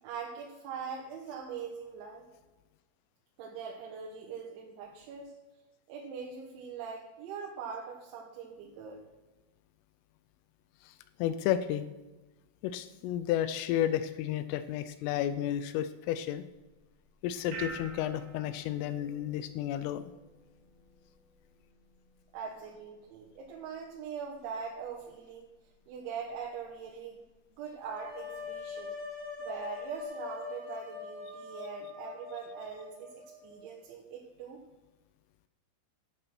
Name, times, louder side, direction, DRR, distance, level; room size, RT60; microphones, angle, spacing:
voice 1, 0.0-2.3 3.4-5.3 5.9-9.0 22.3-25.5 25.9-27.2 27.6-28.9 29.4-34.6, right 6 dB, 75° right, -1 dB, 3.5 m, -42 dB
voice 2, 11.2-11.9 12.6-16.4 17.2-20.0, left 11 dB, 85° left, 12 dB, 3.2 m, -32 dB
sound 1, 16.5-30.0, right 3 dB, 90° right, 1.4 m, -52 dB
sound 2, 27.8-33.7, left 5 dB, 25° right, 1.2 m, -43 dB
12.0 x 7.8 x 6.0 m, 1.1 s
omnidirectional pair, 5.8 m